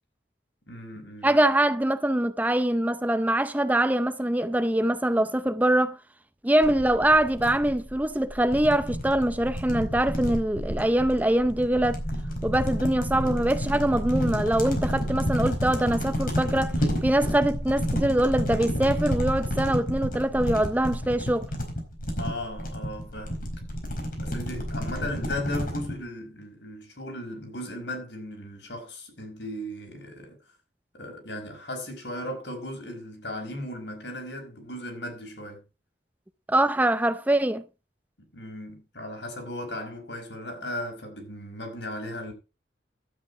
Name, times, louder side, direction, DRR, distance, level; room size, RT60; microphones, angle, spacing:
voice 1, 0.7-1.4 22.2-23.4 24.2-30.4 30.9-35.6 38.2-42.3, left 1 dB, 75° left, 5.1 m, -36 dB
voice 2, 1.2-6.0 6.4-12.0 12.4-21.5 36.5-37.6, right 1 dB, 10° right, 0.5 m, -23 dB
sound 1, 6.6-25.9, equal, 50° left, 4.5 m, -30 dB
12.0 x 9.0 x 4.8 m
head